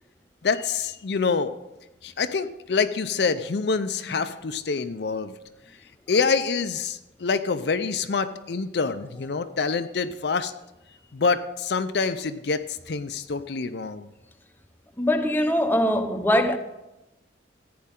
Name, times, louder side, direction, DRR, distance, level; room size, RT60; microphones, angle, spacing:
voice 1, 0.4-1.5 2.0-5.3 6.1-10.5 11.1-14.1, left 5 dB, 60° left, 0.5 m, -26 dB
voice 2, 15.0-16.6, left 1 dB, 10° left, 0.7 m, -22 dB
14.5 x 9.5 x 3.7 m
head